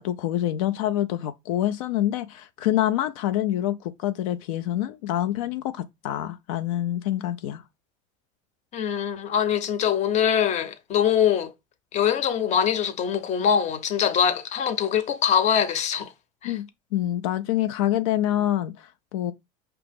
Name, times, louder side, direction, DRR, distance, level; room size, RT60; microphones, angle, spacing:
voice 1, 0.0-7.6 16.4-16.7 16.9-19.3, left 12 dB, 85° left, 0.4 m, -26 dB
voice 2, 8.7-11.5 11.9-16.1 16.4-16.6, left 8 dB, 45° left, 0.8 m, -23 dB
4.9 x 2.9 x 3.5 m
supercardioid pair, 115°, 17 cm